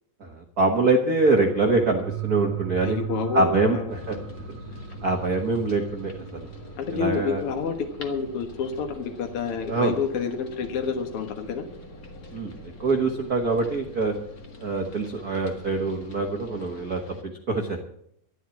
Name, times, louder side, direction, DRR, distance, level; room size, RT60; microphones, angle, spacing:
voice 1, 0.2-3.0 3.3-4.2 5.0-6.5 6.9-7.4 9.7-10.0 12.3-12.5 12.8-14.1 14.6-17.8, right 3 dB, 75° right, 2 dB, 0.8 m, -24 dB
sound 1, 1.1-10.2 10.5-10.6, right 13 dB, 45° right, 2.0 m, -38 dB
voice 2, 2.8-3.9 6.8-11.7, left 5 dB, 60° left, 5 dB, 1.5 m, -29 dB
sound 2, 3.9-17.2, left 2 dB, 40° left, 1.3 m, -43 dB
12.0 x 12.0 x 7.1 m, 0.68 s
omnidirectional pair, 4.2 m